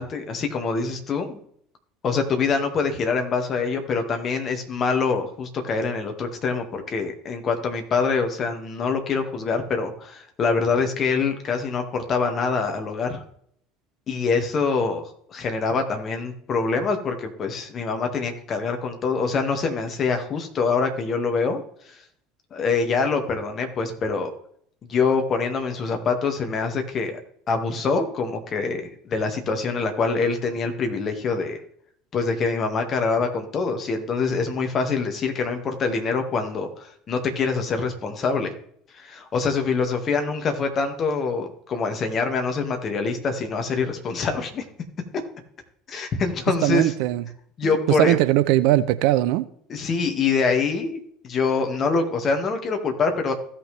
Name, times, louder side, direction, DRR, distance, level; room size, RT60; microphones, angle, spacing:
voice 1, 0.0-1.4 2.0-13.2 14.1-22.0 22.5-24.3 24.9-27.2 27.5-31.6 32.1-38.5 38.9-44.7 45.9-46.9 47.6-48.2 49.7-53.3, left 4 dB, 35° left, 2.0 m, -25 dB
voice 2, 46.6-47.2 48.0-49.4, right 15 dB, 60° right, 0.5 m, -20 dB
16.0 x 5.8 x 3.4 m
figure-of-eight pair, 65°, 0 cm